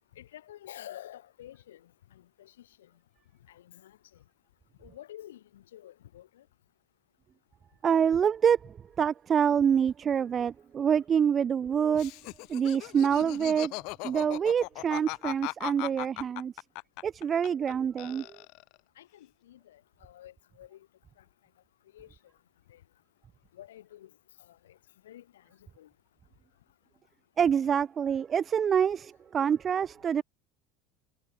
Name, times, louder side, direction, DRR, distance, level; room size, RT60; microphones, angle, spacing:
voice 1, 0.1-2.9 3.5-4.2 4.8-6.5 19.0-20.9 21.2-21.3 21.9-22.2 22.7-22.8 23.5-24.1 24.4-24.8 25.0-25.9, left 12 dB, 85° left, 7.6 m, -50 dB
voice 2, 7.8-12.1 12.5-13.7 14.0-16.5 17.0-18.3 27.4-30.2, right 7 dB, 35° right, 0.9 m, -26 dB
Laughter, 11.9-17.7 18.0-18.8, left 27 dB, 65° left, 1.1 m, -38 dB
hypercardioid pair, 80°, 0 cm